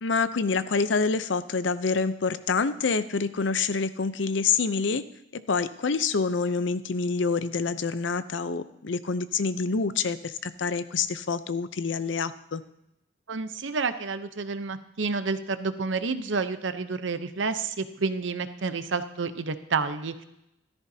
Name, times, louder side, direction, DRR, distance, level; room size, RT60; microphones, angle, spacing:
voice 1, 0.0-5.0 5.3-12.6, left 4 dB, 70° left, 13 dB, 0.6 m, -27 dB
voice 2, 13.3-20.2, right 4 dB, 70° right, 10 dB, 0.8 m, -29 dB
14.5 x 13.5 x 2.8 m, 0.83 s
head